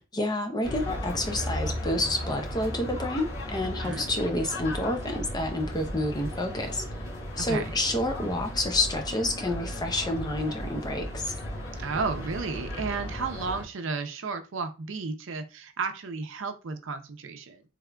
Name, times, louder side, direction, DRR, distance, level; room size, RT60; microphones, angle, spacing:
voice 1, 0.1-6.9 7.4-11.3, left 1 dB, 20° left, 0.5 m, -29 dB
sound 1, 0.6-13.6, equal, 70° left, 1.4 m, -35 dB
voice 2, 3.6-4.0 7.4-7.7 11.8-17.6, right 4 dB, 65° right, 0.5 m, -33 dB
3.6 x 3.4 x 2.2 m
head